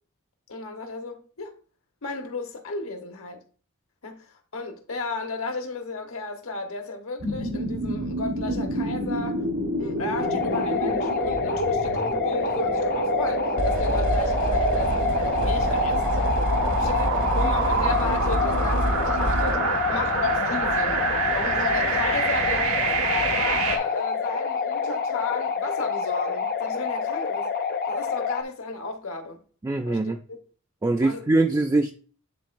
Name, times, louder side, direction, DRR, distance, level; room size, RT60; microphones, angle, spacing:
voice 1, 0.5-1.6 2.0-3.4 4.0-9.5 9.8-16.0 16.8-21.0 21.3-27.5 27.8-29.4 29.8-30.2 31.0-31.3, left 3 dB, 70° left, 1.2 m, -34 dB
sound 1, 7.2-23.8, right 3 dB, 85° right, 1.2 m, -27 dB
sound 2, 10.2-28.4, left 6 dB, 45° left, 0.5 m, -27 dB
sound 3, 13.6-19.5, right 1 dB, 60° right, 0.9 m, -28 dB
voice 2, 29.6-30.2 30.8-31.9, right 2 dB, 15° right, 0.3 m, -22 dB
10.0 x 3.8 x 2.6 m
head